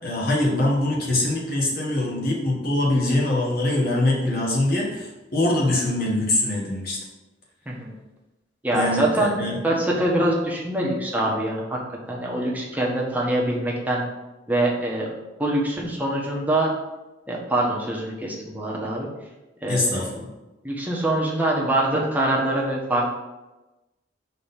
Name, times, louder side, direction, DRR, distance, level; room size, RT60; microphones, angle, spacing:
voice 1, 0.0-7.0 8.7-9.6 19.7-20.3, left 1 dB, 55° left, -4 dB, 1.8 m, -23 dB
voice 2, 8.6-9.4 9.6-11.8 12.1-14.0 14.5-15.1 15.4-16.7 17.3-19.1 19.6-20.0 20.6-23.1, right 1 dB, 10° right, -3 dB, 1.2 m, -24 dB
5.1 x 3.9 x 5.7 m, 1.0 s
head